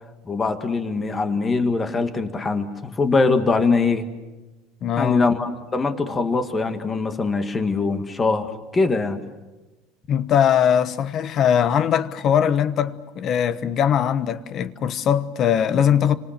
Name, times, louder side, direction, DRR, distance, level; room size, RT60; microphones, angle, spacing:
voice 1, 0.3-4.0 5.0-9.2, left 4 dB, 15° left, 1.9 m, -22 dB
voice 2, 4.8-5.3 10.1-16.2, left 8 dB, 35° left, 1.2 m, -20 dB
29.5 x 25.5 x 6.7 m
cardioid pair, 165°, 0 cm